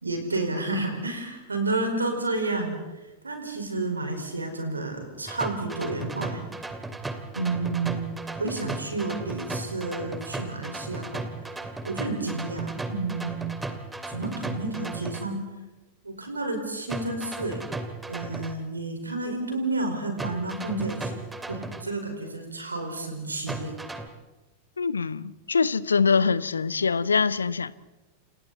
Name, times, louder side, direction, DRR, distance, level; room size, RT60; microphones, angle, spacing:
voice 1, 0.0-2.8 3.2-6.4 7.3-11.3 11.8-13.5 14.0-15.4 16.0-17.6 18.1-21.2 21.5-23.7, right 2 dB, 80° right, 4.9 m, -30 dB
sound 1, 5.3-15.3 16.9-18.5 20.2-21.8 23.5-24.1, right 2 dB, 10° right, 2.3 m, -36 dB
voice 2, 24.8-27.7, left 5 dB, 75° left, 0.8 m, -24 dB
29.5 x 28.5 x 4.2 m
figure-of-eight pair, 90°, 0 cm